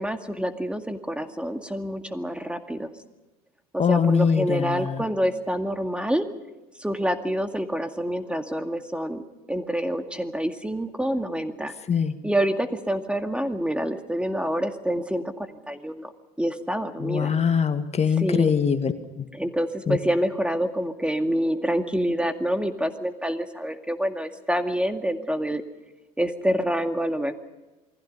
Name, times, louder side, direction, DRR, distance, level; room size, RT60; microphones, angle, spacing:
voice 1, 0.0-2.9 3.9-6.3 6.8-9.2 9.5-11.7 12.2-16.1 16.4-17.3 18.2-18.5 19.3-25.6 26.2-27.3, equal, 5° right, 7 dB, 2.1 m, -27 dB
voice 2, 3.8-5.0 11.9-12.2 17.0-18.9 19.2-19.3 19.9-20.0, left 6 dB, 35° left, 8 dB, 1.9 m, -22 dB
28.0 x 20.5 x 5.4 m, 1.1 s
hypercardioid pair, 70°, 20 cm